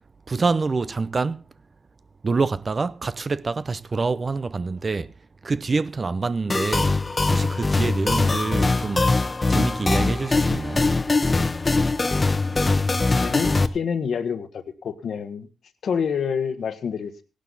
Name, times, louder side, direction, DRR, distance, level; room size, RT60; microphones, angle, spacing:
voice 1, 0.3-1.5 2.2-5.1 5.4-7.0 7.3-9.2 9.5-10.9, right 4 dB, 40° right, 0.6 m, -26 dB
sound 1, 6.5-13.7, left 3 dB, 30° left, 1.0 m, -22 dB
voice 2, 13.1-15.5 15.8-17.2, left 6 dB, 70° left, 1.4 m, -27 dB
16.0 x 11.5 x 4.0 m
cardioid pair, 75°, 0 cm